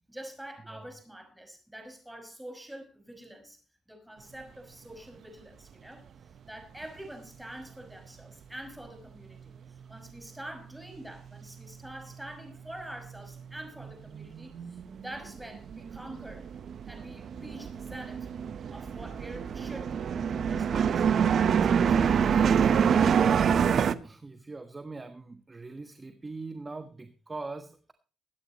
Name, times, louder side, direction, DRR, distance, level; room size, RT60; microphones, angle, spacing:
voice 1, 0.1-3.6 3.9-6.0 6.5-16.5 16.9-18.3 18.7-20.0 20.5-22.6, right 1 dB, 5° right, 5 dB, 5.6 m, -46 dB
sound 1, 11.1-11.2 11.3-12.6 12.8-23.9, right 7 dB, 60° right, 0.9 m, -26 dB
voice 2, 24.0-27.9, right 3 dB, 25° right, 8 dB, 1.3 m, -42 dB
23.5 x 9.3 x 3.0 m, 0.37 s
cardioid pair, 90°, 0 cm